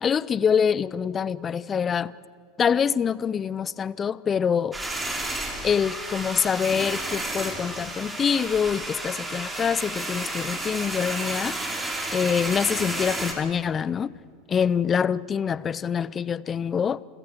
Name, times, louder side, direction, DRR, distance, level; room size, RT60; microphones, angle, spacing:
voice 1, 0.0-2.1 2.6-4.8 5.6-11.6 12.1-14.1 14.5-17.0, left 7 dB, 30° left, 0.5 m, -25 dB
sound 1, 4.7-13.3, right 2 dB, 15° right, 3.5 m, -32 dB
28.5 x 15.0 x 7.3 m
hypercardioid pair, 85°, 0 cm